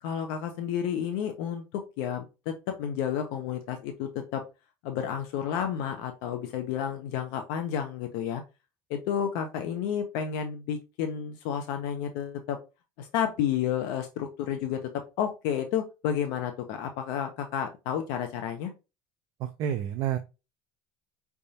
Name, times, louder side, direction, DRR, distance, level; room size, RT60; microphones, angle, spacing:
voice 1, 0.0-4.4 4.8-8.4 8.9-12.6 13.0-14.9 15.2-18.7, left 9 dB, 65° left, 6 dB, 0.7 m, -31 dB
voice 2, 19.4-20.2, right 10 dB, 40° right, 7 dB, 0.4 m, -29 dB
5.1 x 3.5 x 2.8 m, 0.28 s
cardioid pair, 170°, 9 cm